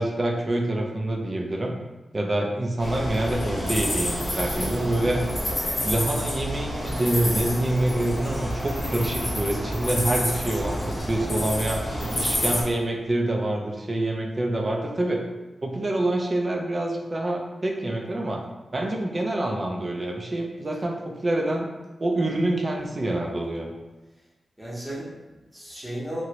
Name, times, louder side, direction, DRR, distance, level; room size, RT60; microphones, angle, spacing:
voice 1, 0.0-1.7 2.1-5.2 5.8-11.8 12.2-15.2 15.6-18.4 18.7-21.7 22.0-23.7, right 1 dB, 30° right, 1 dB, 0.4 m, -26 dB
sound 1, 2.8-12.6, equal, 35° left, 0.9 m, -29 dB
voice 2, 4.5-4.9 12.0-12.3 24.6-26.2, right 1 dB, 5° right, -7 dB, 0.8 m, -36 dB
3.0 x 2.5 x 2.8 m, 1.1 s
wide cardioid pair, 170°, 0 cm